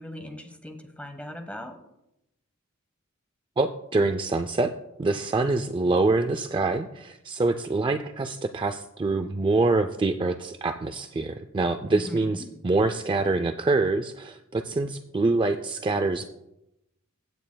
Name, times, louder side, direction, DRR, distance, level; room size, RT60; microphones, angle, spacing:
voice 1, 0.0-1.8 11.9-12.5, equal, 5° left, 5 dB, 1.1 m, -39 dB
voice 2, 3.6-4.7 5.0-16.3, right 3 dB, 25° right, 9 dB, 0.4 m, -25 dB
16.0 x 9.1 x 2.3 m, 0.86 s
head